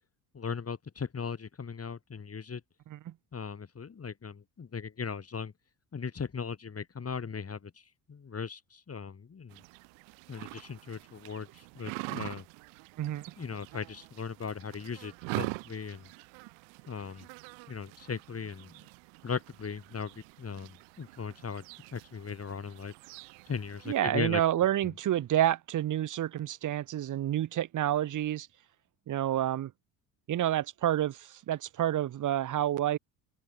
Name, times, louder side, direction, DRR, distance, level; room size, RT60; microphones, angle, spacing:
voice 1, 0.3-2.6 3.3-5.5 5.9-9.6 10.3-12.4 13.4-16.1 16.9-17.3 17.7-18.8 19.2-21.6 21.9-22.9 23.5-24.6, left 6 dB, 30° left, 4.3 m, -38 dB
sound 1, 9.5-24.0, right 33 dB, 70° right, 5.8 m, -44 dB
voice 2, 23.9-28.5 29.1-29.7 30.3-33.0, right 12 dB, 40° right, 1.1 m, -29 dB
open air
hypercardioid pair, 60°, 46 cm